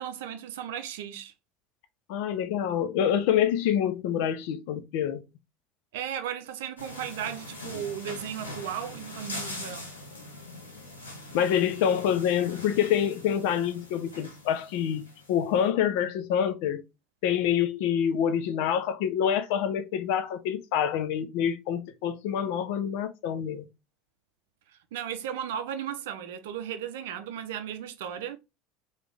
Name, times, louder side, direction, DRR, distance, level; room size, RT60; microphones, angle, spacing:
voice 1, 0.0-1.3 5.9-9.9 24.7-28.4, right 9 dB, 70° right, 0.5 m, -35 dB
voice 2, 2.1-5.2 11.3-16.8 17.2-23.7, left 9 dB, 65° left, 0.6 m, -26 dB
sound 1, 6.8-15.6, left 2 dB, 90° left, 1.0 m, -42 dB
3.4 x 2.4 x 3.3 m
hypercardioid pair, 70°, 0 cm